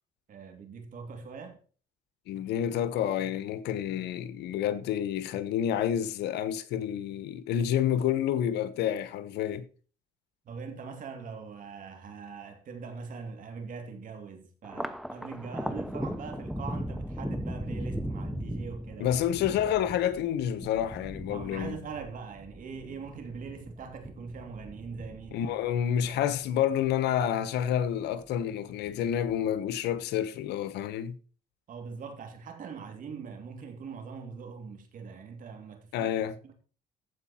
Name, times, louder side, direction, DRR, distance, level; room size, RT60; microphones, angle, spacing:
voice 1, 0.3-1.6 10.4-19.1 21.3-26.4 31.7-36.2 36.4-36.5, right 5 dB, 50° right, 2.9 m, -42 dB
voice 2, 2.3-9.7 19.0-21.8 25.3-31.2 35.9-36.3, left 10 dB, 80° left, 1.1 m, -29 dB
Thunder, 14.6-27.3 27.7-28.5 28.8-29.7, equal, ahead, 0.7 m, -38 dB
14.5 x 5.1 x 4.3 m
cardioid pair, 110°, 17 cm